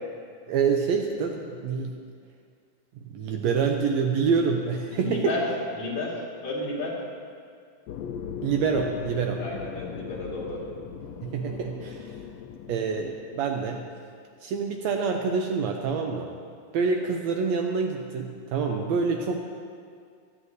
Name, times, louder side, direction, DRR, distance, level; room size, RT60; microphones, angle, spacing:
voice 1, 0.5-1.9 3.1-5.3 8.4-9.4 11.2-12.1 12.7-13.8 14.4-16.3 16.7-19.4, right 5 dB, 75° right, 3 dB, 1.7 m, -26 dB
voice 2, 4.9-5.5 5.7-7.0 9.4-10.6, left 2 dB, 65° left, -5 dB, 3.3 m, -32 dB
sound 1, 7.9-13.9, left 7 dB, 85° left, 1.4 m, -39 dB
14.5 x 12.5 x 2.7 m, 2.1 s
omnidirectional pair, 3.5 m